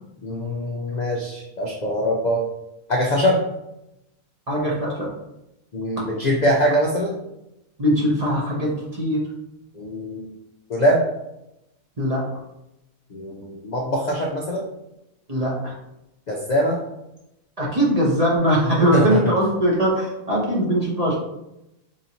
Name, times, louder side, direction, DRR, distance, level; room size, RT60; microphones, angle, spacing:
voice 1, 0.2-2.4 2.9-3.4 5.7-7.1 9.8-10.3 10.7-11.0 13.1-14.7 16.3-16.8 18.9-19.2, equal, 75° left, -2 dB, 0.4 m, -22 dB
voice 2, 4.5-5.1 7.8-9.2 12.0-12.2 15.3-15.7 17.6-21.2, equal, 35° right, -4 dB, 0.7 m, -21 dB
4.9 x 2.7 x 2.8 m, 0.88 s
omnidirectional pair, 1.5 m